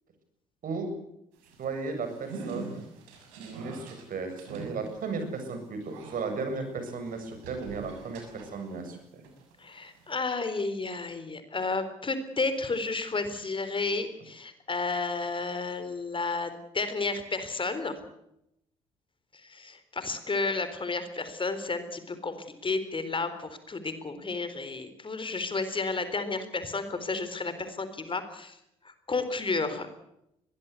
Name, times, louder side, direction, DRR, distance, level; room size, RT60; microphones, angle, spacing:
sound 1, 1.3-8.9 9.2-10.2, right 4 dB, 75° right, 6.7 m, -45 dB
voice 1, 1.6-2.7 3.4-9.2, right 4 dB, 55° right, 7 dB, 7.2 m, -35 dB
voice 2, 9.6-18.0 19.3-28.6 28.8-29.9, left 3 dB, 30° left, 11 dB, 3.8 m, -32 dB
22.5 x 20.0 x 8.3 m, 0.81 s
hypercardioid pair, 55°, 17 cm